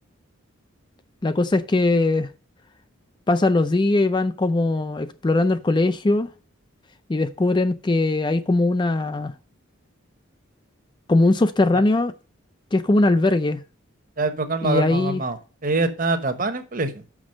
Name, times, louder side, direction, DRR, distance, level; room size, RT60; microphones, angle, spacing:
voice 1, 1.2-2.3 3.3-6.3 7.1-9.3 11.1-12.1 12.7-13.6 14.6-15.2, left 2 dB, 20° left, 0.4 m, -20 dB
voice 2, 14.2-15.4 15.6-17.0, right 3 dB, 40° right, 1.1 m, -24 dB
6.1 x 6.1 x 6.2 m
head